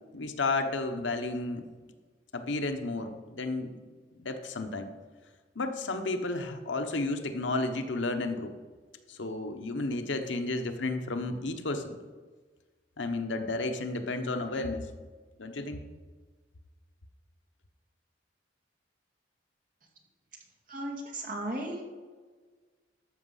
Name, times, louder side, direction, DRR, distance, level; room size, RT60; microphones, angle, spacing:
voice 1, 0.1-1.7 2.3-3.8 4.2-4.9 5.6-8.5 9.1-12.0 13.0-14.9 15.4-15.8, left 2 dB, 80° left, 6 dB, 1.0 m, -32 dB
voice 2, 20.7-21.8, right 1 dB, 45° right, 1 dB, 2.0 m, -35 dB
13.5 x 6.2 x 5.6 m, 1.4 s
head